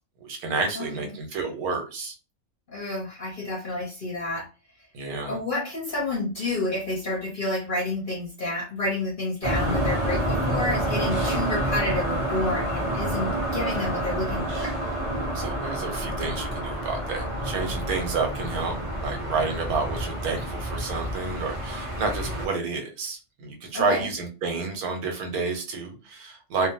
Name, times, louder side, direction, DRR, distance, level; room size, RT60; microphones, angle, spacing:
voice 1, 0.2-2.1 4.9-5.4 15.3-26.7, right 4 dB, 80° right, 4 dB, 1.3 m, -30 dB
voice 2, 0.7-1.1 2.7-4.5 5.3-14.8 23.7-24.1, left 2 dB, 50° left, -1 dB, 0.6 m, -30 dB
sound 1, 9.4-22.5, right 1 dB, 35° right, 0.5 m, -28 dB
2.8 x 2.0 x 2.7 m, 0.31 s
omnidirectional pair, 1.5 m